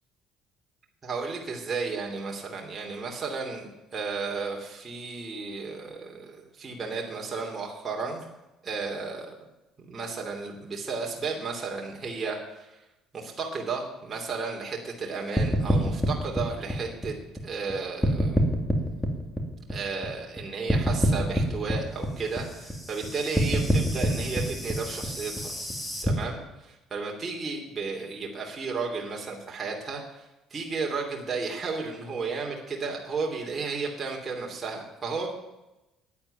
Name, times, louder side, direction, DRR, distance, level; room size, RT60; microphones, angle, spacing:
voice 1, 1.0-8.3 8.6-9.3 9.8-12.8 13.1-17.1 17.4-18.4 19.7-35.3, right 4 dB, 30° right, 0 dB, 2.9 m, -33 dB
sound 1, 15.4-17.7 18.0-20.4 20.7-26.1, equal, 10° left, 2.7 m, -26 dB
10.0 x 8.7 x 9.1 m, 0.98 s
supercardioid pair, 95°, 0 cm